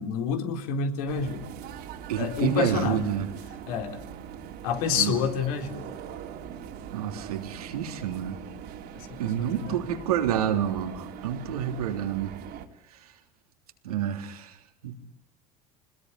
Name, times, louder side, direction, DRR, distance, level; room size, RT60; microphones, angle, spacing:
voice 1, 0.0-1.5 2.2-3.1 3.7-4.0 4.6-5.9 9.0-9.8, left 6 dB, 75° left, 3.9 m, -28 dB
sound 1, 1.1-12.7, right 9 dB, 60° right, 3.5 m, -41 dB
voice 2, 2.1-3.3 4.9-5.2 6.9-8.4 9.2-12.3 13.8-14.5 14.8-14.9, right 10 dB, 90° right, 3.5 m, -29 dB
26.0 x 20.5 x 9.9 m
hypercardioid pair, 80°, 19 cm